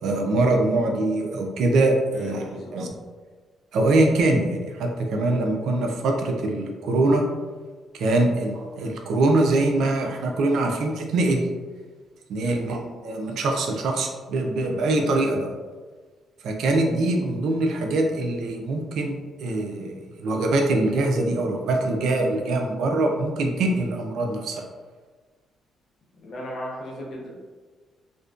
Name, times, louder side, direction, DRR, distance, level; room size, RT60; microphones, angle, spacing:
voice 1, 0.0-2.9 3.7-7.2 7.9-11.5 12.3-15.5 16.4-24.6, right 2 dB, 75° right, 2 dB, 0.4 m, -23 dB
voice 2, 2.2-2.7 12.4-12.6 26.2-27.3, equal, 60° left, -3 dB, 0.7 m, -36 dB
2.5 x 2.1 x 2.4 m, 1.4 s
cardioid pair, 90°, 0 cm